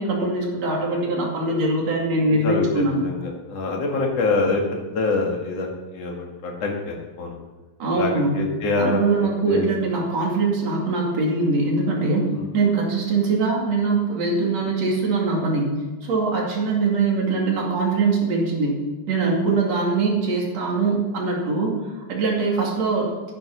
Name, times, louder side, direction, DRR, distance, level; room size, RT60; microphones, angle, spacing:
voice 1, 0.0-3.0 7.8-8.4 8.8-12.3 12.5-18.8 19.1-21.7 22.1-23.1, right 3 dB, 60° right, -2 dB, 3.6 m, -22 dB
voice 2, 2.3-7.3 7.9-9.1 9.4-9.7 12.3-12.5, left 3 dB, 60° left, 0 dB, 3.0 m, -25 dB
10.5 x 9.9 x 5.8 m, 1.2 s
omnidirectional pair, 3.3 m